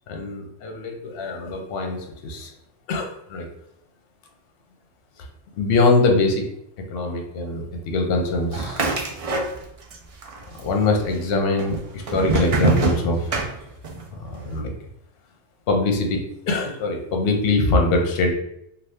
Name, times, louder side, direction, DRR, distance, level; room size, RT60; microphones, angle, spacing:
voice 1, 0.1-2.5 2.9-3.5 5.6-6.4 6.9-8.9 10.6-13.3 14.2-14.7 15.7-16.2 16.5-18.3, left 3 dB, 65° left, 2 dB, 0.8 m, -23 dB
sound 1, 8.5-10.0 10.2-11.0 11.6-14.1, right 4 dB, 65° right, 0.3 m, -24 dB
2.6 x 2.4 x 3.3 m, 0.77 s
omnidirectional pair, 1.1 m